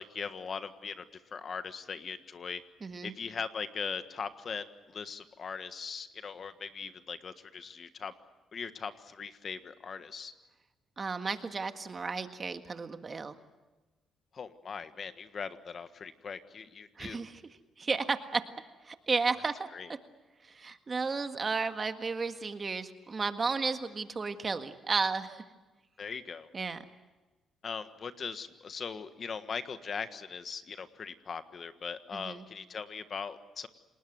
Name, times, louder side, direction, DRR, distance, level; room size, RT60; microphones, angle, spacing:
voice 1, 0.0-2.6 3.0-8.1 8.5-10.3 14.3-17.2 19.7-19.9 26.0-26.5 27.6-33.7, left 6 dB, 45° left, 10 dB, 1.5 m, -40 dB
voice 2, 2.8-3.1 11.0-13.4 17.0-17.4 17.8-18.4 18.8-20.0 20.4-25.4 26.5-26.8 32.1-32.4, right 4 dB, 35° right, 8 dB, 1.7 m, -33 dB
28.5 x 20.0 x 8.0 m, 1.1 s
cardioid pair, 90°, 0 cm